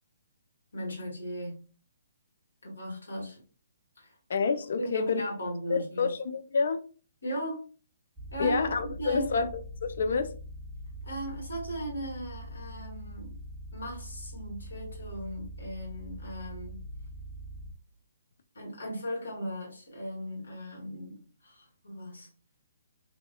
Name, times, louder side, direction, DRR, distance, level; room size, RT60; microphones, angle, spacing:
voice 1, 0.7-1.6 2.6-3.4 4.0-4.1 4.8-6.1 7.2-7.6 8.3-9.5 11.0-13.3 13.7-16.8 18.5-22.3, right 1 dB, 75° left, 1.4 m, -37 dB
voice 2, 4.3-5.2 5.7-6.8 8.4-10.3, left 5 dB, 60° left, 0.4 m, -28 dB
sound 1, 8.2-17.7, equal, ahead, 0.5 m, -43 dB
2.7 x 2.3 x 2.2 m
figure-of-eight pair, 130°, 0 cm